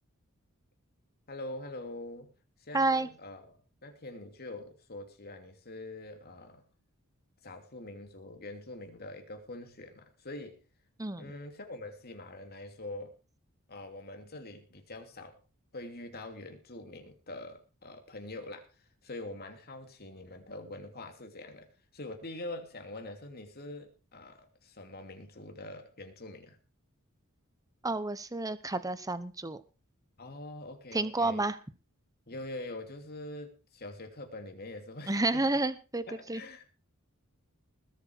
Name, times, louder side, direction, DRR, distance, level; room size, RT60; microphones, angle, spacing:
voice 1, 1.3-2.3 2.6-3.4 3.8-6.6 7.4-10.6 11.2-13.1 13.7-15.4 15.7-18.7 19.0-21.7 21.9-26.6 30.2-31.4 32.3-35.4 36.1-36.6, left 2 dB, 50° left, 5 dB, 2.9 m, -44 dB
voice 2, 2.7-3.1 11.0-11.3 27.8-29.6 30.9-31.6 35.1-36.4, right 2 dB, 15° right, 14 dB, 1.0 m, -30 dB
20.0 x 8.3 x 4.7 m, 0.34 s
head